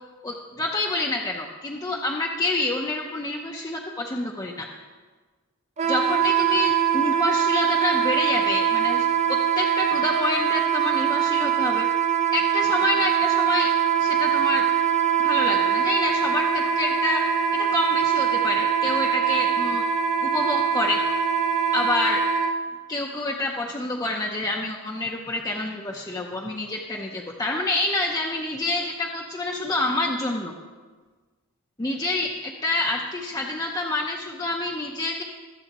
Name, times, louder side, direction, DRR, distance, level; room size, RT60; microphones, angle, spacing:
voice 1, 0.2-4.7 5.9-11.9 12.3-13.7 14.0-14.6 15.2-17.2 17.5-19.8 20.2-21.0 21.7-22.2 22.9-30.5 31.8-35.2, left 2 dB, 15° left, -1 dB, 0.7 m, -27 dB
Wind instrument woodwind instrument, 5.8-22.5, right 8 dB, 30° right, 0.6 m, -23 dB
20.5 x 7.7 x 3.0 m, 1.4 s
head